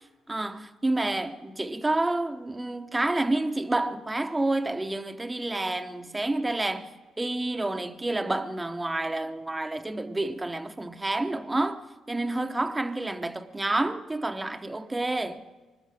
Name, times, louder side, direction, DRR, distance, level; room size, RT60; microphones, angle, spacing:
voice 1, 0.3-6.9 7.2-11.8 12.1-15.4, right 2 dB, 15° right, 0.9 m, -29 dB
22.0 x 12.5 x 5.0 m
cardioid pair, 85°, 0 cm